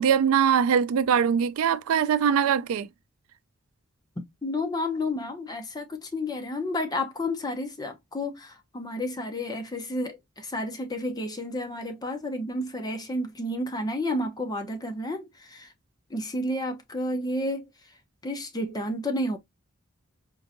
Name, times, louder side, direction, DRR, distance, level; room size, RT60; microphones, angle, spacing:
voice 1, 0.0-2.9, right 7 dB, 80° right, 0.3 m, -22 dB
voice 2, 4.4-15.7 16.1-17.6 18.2-19.4, left 1 dB, 20° left, 0.6 m, -31 dB
4.5 x 2.5 x 2.5 m
head